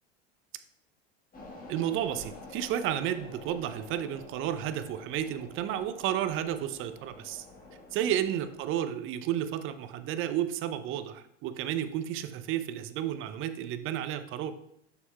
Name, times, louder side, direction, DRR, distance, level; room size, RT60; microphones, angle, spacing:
sound 1, 1.3-8.8, left 2 dB, 25° left, 1.6 m, -49 dB
voice 1, 1.7-7.4 7.9-14.5, right 10 dB, 40° right, 11 dB, 0.6 m, -32 dB
6.8 x 6.7 x 2.3 m, 0.76 s
hypercardioid pair, 85°, 33 cm